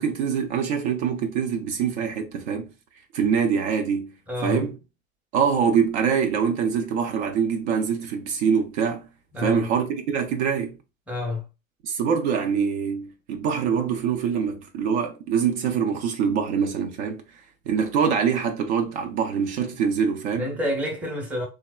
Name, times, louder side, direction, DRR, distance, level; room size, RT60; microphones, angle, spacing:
voice 1, 0.0-2.7 3.1-4.1 4.4-4.8 5.3-9.1 9.4-10.7 11.8-17.2 17.7-20.5, right 7 dB, 55° right, 0.6 m, -24 dB
voice 2, 4.3-4.7 9.3-9.7 11.1-11.4 20.4-21.5, left 1 dB, 5° right, 0.7 m, -28 dB
3.2 x 2.0 x 2.2 m
hypercardioid pair, 105°, 42 cm